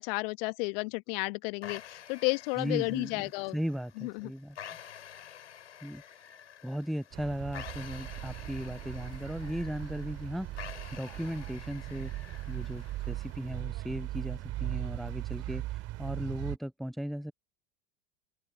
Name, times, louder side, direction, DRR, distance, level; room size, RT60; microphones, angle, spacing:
voice 1, 0.0-3.6 4.0-4.3, left 30 dB, 55° left, 1.2 m, -32 dB
sound 1, 1.6-13.6, left 9 dB, 75° left, 3.7 m, -49 dB
voice 2, 2.6-4.6 5.8-6.0 6.6-12.1 12.5-17.3, equal, ahead, 0.6 m, -37 dB
sound 2, 7.1-16.6, right 16 dB, 45° right, 2.5 m, -39 dB
figure-of-eight pair, 80°, 35 cm